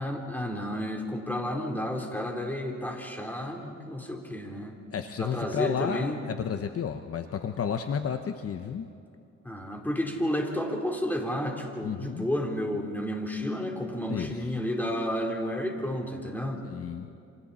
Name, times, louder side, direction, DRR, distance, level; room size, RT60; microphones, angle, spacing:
voice 1, 0.0-4.8 5.2-6.2 9.4-16.6, equal, 5° left, 1 dB, 3.9 m, -31 dB
voice 2, 4.9-8.9 11.8-12.3 14.1-14.4 16.6-17.1, left 7 dB, 50° left, 7 dB, 1.0 m, -32 dB
29.0 x 27.5 x 4.3 m, 2.5 s
cardioid pair, 90°, 30 cm